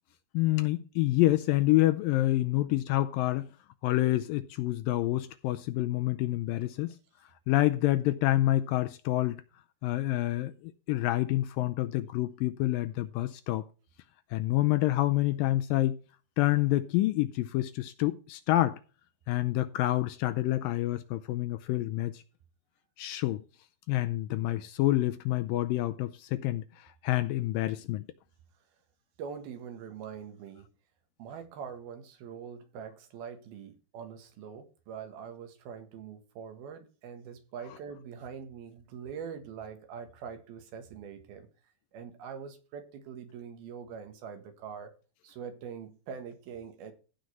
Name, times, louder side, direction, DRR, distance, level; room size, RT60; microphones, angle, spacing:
voice 1, 0.3-3.5 3.8-6.9 7.5-9.4 9.8-13.7 14.3-16.0 16.4-18.8 19.3-22.2 23.0-23.4 23.9-28.0, left 16 dB, 80° left, 2.1 m, -27 dB
voice 2, 29.2-30.7 31.2-41.5 41.9-44.9 45.2-46.9, right 7 dB, 75° right, 3.4 m, -43 dB
15.5 x 5.2 x 4.5 m
omnidirectional pair, 4.4 m